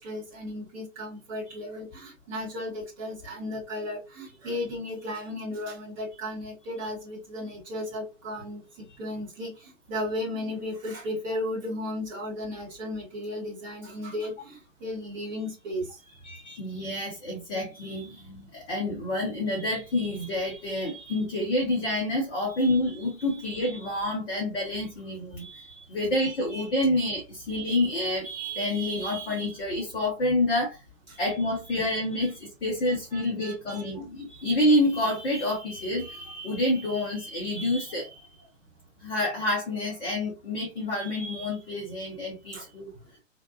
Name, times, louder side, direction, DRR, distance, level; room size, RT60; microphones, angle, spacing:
voice 1, 0.0-16.2 31.1-31.2 32.9-33.9 42.5-42.7 43.0-43.1, left 1 dB, 5° right, 0.4 m, -35 dB
voice 2, 16.2-30.8 31.1-38.3 39.0-42.9, left 1 dB, 45° left, 1.3 m, -28 dB
3.4 x 2.2 x 2.5 m
figure-of-eight pair, 115°, 38 cm